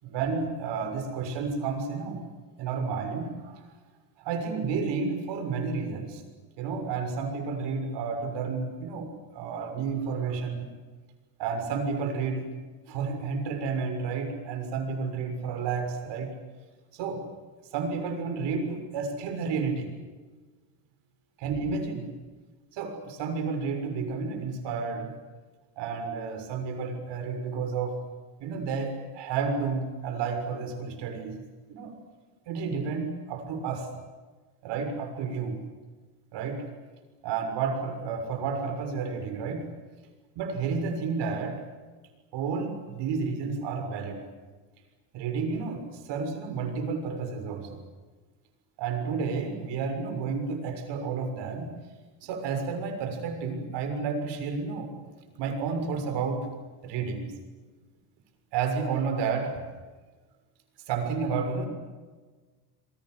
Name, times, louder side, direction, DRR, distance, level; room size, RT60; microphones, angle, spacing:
voice 1, 0.0-2.2 2.6-3.6 4.2-6.2 6.6-10.7 11.4-12.5 12.9-16.3 16.9-17.3 17.7-19.9 21.4-22.1 22.7-25.1 25.8-28.0 28.4-31.4 31.7-31.9 32.5-33.8 34.6-35.6 36.3-36.7 37.2-39.7 40.3-41.6 42.3-44.3 45.1-47.8 48.8-51.7 52.2-54.9 55.4-56.5 56.8-57.3 58.5-59.6 60.9-61.7, right 5 dB, 65° right, 6 dB, 6.6 m, -31 dB
28.0 x 23.0 x 7.9 m, 1.3 s
cardioid pair, 160°, 46 cm